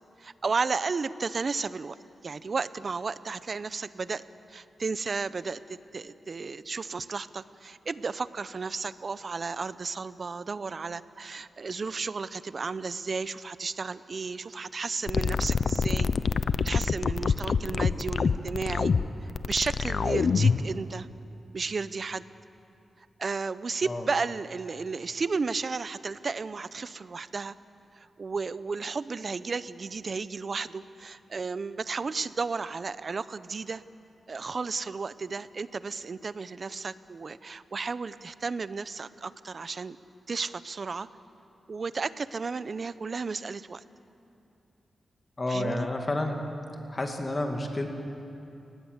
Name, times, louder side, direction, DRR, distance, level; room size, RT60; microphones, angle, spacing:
voice 1, 0.2-2.0 2.2-4.2 4.5-16.1 16.6-18.9 19.2-21.1 21.5-22.3 23.2-27.5 27.9-33.8 34.3-40.0 40.3-41.1 41.7-43.8 45.5-45.9, right 4 dB, 50° right, 15 dB, 0.7 m, -33 dB
sound 1, 15.1-20.7, left 5 dB, 60° left, 0.7 m, -25 dB
voice 2, 45.4-46.4 46.9-47.9, left 1 dB, 30° left, 3 dB, 2.2 m, -30 dB
29.5 x 19.5 x 8.1 m, 2.7 s
cardioid pair, 85°, 0 cm